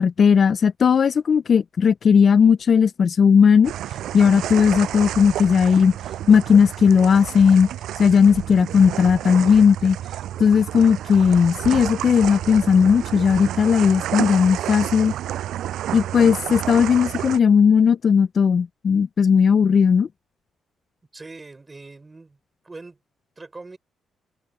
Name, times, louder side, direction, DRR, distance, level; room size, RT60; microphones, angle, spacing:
voice 1, 0.0-3.7 4.1-5.9 6.3-7.7 8.0-10.0 10.4-15.1 15.9-20.1, left 6 dB, 40° left, 0.3 m, -16 dB
sound 1, 3.6-17.4, right 12 dB, 85° right, 6.3 m, -30 dB
voice 2, 21.1-22.4 22.6-23.0 23.4-23.8, right 3 dB, 15° right, 6.0 m, -41 dB
cardioid pair, 165°, 0 cm